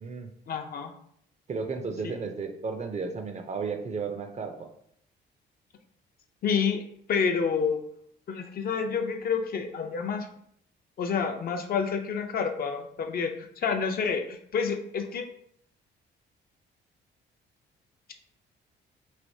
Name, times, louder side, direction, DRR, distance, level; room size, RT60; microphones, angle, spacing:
voice 1, 0.5-0.9 2.0-2.1 6.4-7.8 8.3-10.3 11.0-15.3, left 6 dB, 50° left, 5 dB, 0.4 m, -29 dB
voice 2, 1.5-4.7, right 4 dB, 35° right, 6 dB, 0.4 m, -33 dB
3.2 x 2.7 x 2.7 m, 0.70 s
cardioid pair, 90°, 20 cm